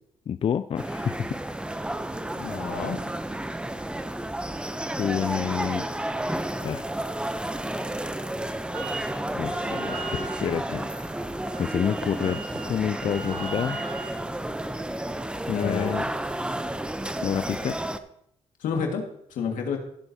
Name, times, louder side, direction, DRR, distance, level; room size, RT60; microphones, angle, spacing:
voice 1, 0.3-1.3 5.0-5.9 6.6-6.9 9.3-10.8 11.6-12.4 12.7-13.8 15.5-16.0 17.2-17.8, left 8 dB, 45° left, 12 dB, 0.4 m, -28 dB
sound 1, 0.8-18.0, right 1 dB, 5° right, 0.6 m, -31 dB
voice 2, 2.4-3.0 15.5-16.0 18.6-19.8, left 5 dB, 85° left, 2 dB, 1.9 m, -30 dB
Wind instrument woodwind instrument, 8.7-9.1 9.4-14.2, right 4 dB, 75° right, 1.4 m, -40 dB
16.0 x 7.9 x 2.8 m, 0.70 s
cardioid pair, 80°, 13 cm